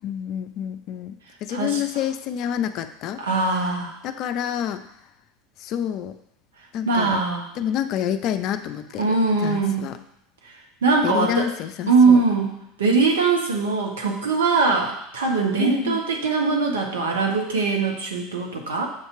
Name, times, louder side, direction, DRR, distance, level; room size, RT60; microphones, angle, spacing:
voice 1, 0.0-1.1 1.4-3.2 4.0-4.8 5.6-6.1 6.7-7.2 7.6-9.1 9.4-10.0 11.0-12.2 15.6-16.0, left 10 dB, 50° left, 9 dB, 0.4 m, -28 dB
voice 2, 1.5-1.8 3.2-4.0 6.8-7.5 9.0-9.9 10.8-11.5 11.9-18.9, right 4 dB, 75° right, 1 dB, 1.1 m, -21 dB
6.5 x 2.9 x 5.6 m, 0.77 s
hypercardioid pair, 80°, 0 cm